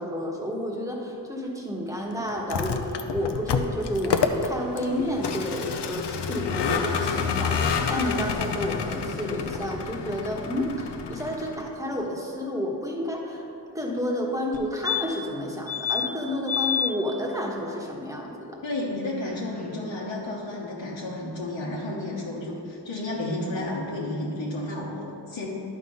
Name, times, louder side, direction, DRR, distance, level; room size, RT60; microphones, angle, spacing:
voice 1, 0.0-13.4 13.7-18.6, equal, 5° right, -1 dB, 1.2 m, -30 dB
Vehicle, 2.3-11.7, left 6 dB, 70° left, 0.6 m, -29 dB
sound 1, 14.5-14.6 14.8-15.3 15.7-16.1 16.5-16.9 19.3-19.4 19.6-19.7, left 8 dB, 20° left, 0.8 m, -27 dB
voice 2, 18.6-25.5, left 1 dB, 90° left, -6 dB, 1.2 m, -32 dB
11.0 x 3.9 x 5.4 m, 2.7 s
wide cardioid pair, 80°, 44 cm